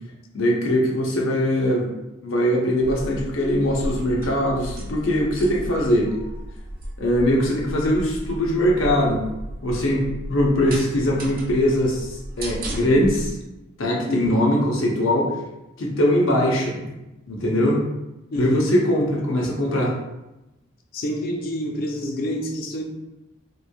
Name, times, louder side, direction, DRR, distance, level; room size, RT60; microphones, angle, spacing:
voice 1, 0.3-1.9 2.2-6.1 7.0-9.2 9.6-13.4 13.8-15.3 15.8-16.9 17.3-17.9 18.4-19.9, equal, 85° left, -1 dB, 0.6 m, -21 dB
sound 1, 2.8-13.3, right 1 dB, 45° right, 0.4 m, -34 dB
voice 2, 14.1-14.4 18.3-18.6 20.9-22.8, left 1 dB, 50° left, 3 dB, 0.4 m, -27 dB
3.0 x 2.4 x 2.2 m, 0.97 s
head